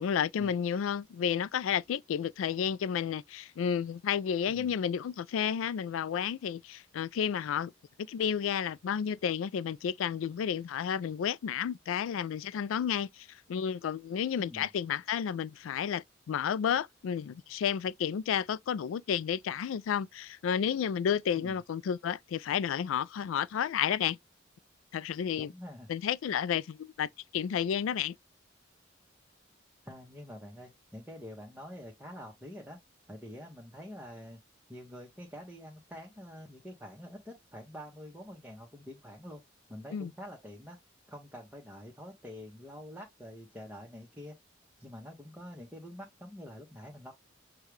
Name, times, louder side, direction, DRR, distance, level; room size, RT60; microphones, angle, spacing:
voice 1, 0.0-7.7 8.1-13.1 13.5-24.2 24.9-25.5 25.9-28.1 39.9-40.1, left 8 dB, 90° left, 0.3 m, -31 dB
voice 2, 14.4-14.7 21.3-21.6 25.4-25.9 29.8-32.8 33.1-34.4 34.7-39.4 39.7-40.8 41.1-44.3 44.8-47.1, equal, 10° right, 0.9 m, -46 dB
6.4 x 2.3 x 3.1 m
head